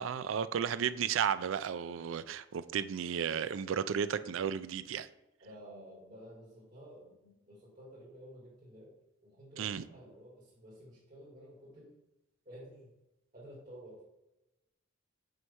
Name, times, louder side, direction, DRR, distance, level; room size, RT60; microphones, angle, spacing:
voice 1, 0.0-5.1 9.6-9.8, right 8 dB, 75° right, 0.4 m, -33 dB
voice 2, 5.4-8.9 9.2-12.0 12.5-12.9 13.3-14.0, equal, 45° right, 2.2 m, -52 dB
6.3 x 4.6 x 5.5 m
head